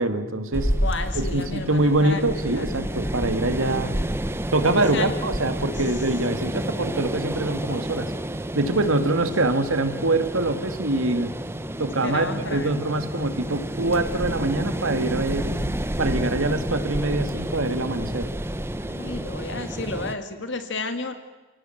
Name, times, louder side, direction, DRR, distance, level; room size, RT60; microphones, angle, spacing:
voice 1, 0.0-0.7 1.2-4.0 4.5-8.1 8.5-11.3 11.8-15.6 16.0-18.3, right 2 dB, 85° right, 9 dB, 2.1 m, -24 dB
sound 1, 0.5-20.2, right 1 dB, 10° right, 0.8 m, -30 dB
voice 2, 0.8-2.2 2.5-2.9 4.9-5.1 12.0-12.7 15.5-15.8 18.9-21.1, left 3 dB, 60° left, 8 dB, 1.8 m, -32 dB
29.5 x 17.5 x 7.9 m, 1.3 s
head